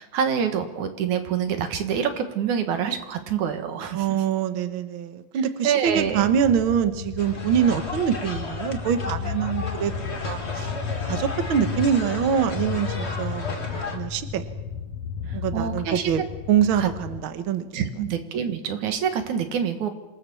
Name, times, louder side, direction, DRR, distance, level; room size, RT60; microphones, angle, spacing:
voice 1, 0.0-4.1 5.6-6.3 15.3-16.1 16.7-16.9 17.7-19.9, right 8 dB, 60° right, 7 dB, 2.8 m, -26 dB
voice 2, 3.9-10.7 11.0-14.4 15.3-16.2 16.5-17.8, right 8 dB, 75° right, 9 dB, 1.1 m, -24 dB
sound 1, 5.9-17.2, left 6 dB, 55° left, 1.9 m, -33 dB
sound 2, 7.2-14.0, left 3 dB, 25° left, 1.4 m, -34 dB
26.5 x 18.0 x 7.1 m, 1.1 s
omnidirectional pair, 4.2 m